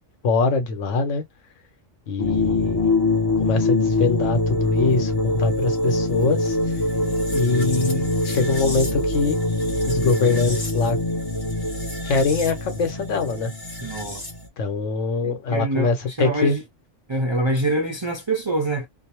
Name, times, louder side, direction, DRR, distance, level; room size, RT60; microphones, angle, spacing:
voice 1, 0.2-1.2 2.1-3.0 3.4-6.8 7.3-9.4 9.9-11.0 12.1-13.5 14.6-16.6, left 4 dB, 85° left, 1.2 m, -23 dB
sound 1, 2.2-14.5, left 2 dB, 25° left, 0.5 m, -24 dB
voice 2, 13.8-14.2 15.2-16.6 17.1-18.9, right 1 dB, 40° right, 0.4 m, -25 dB
2.6 x 2.0 x 2.9 m
omnidirectional pair, 1.2 m